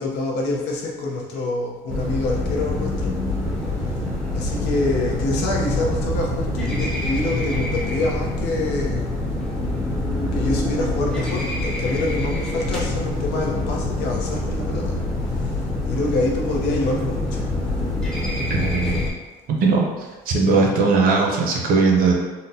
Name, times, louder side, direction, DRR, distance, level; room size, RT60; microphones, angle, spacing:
voice 1, 0.0-3.2 4.3-9.1 10.3-14.9 15.4-17.5, left 2 dB, 85° left, -2 dB, 0.7 m, -26 dB
sound 1, 1.9-19.1, left 1 dB, 5° left, 0.6 m, -25 dB
voice 2, 18.5-19.1 19.5-22.1, right 4 dB, 60° right, 0 dB, 0.6 m, -19 dB
3.9 x 2.1 x 2.7 m, 1.2 s
cardioid pair, 140°, 17 cm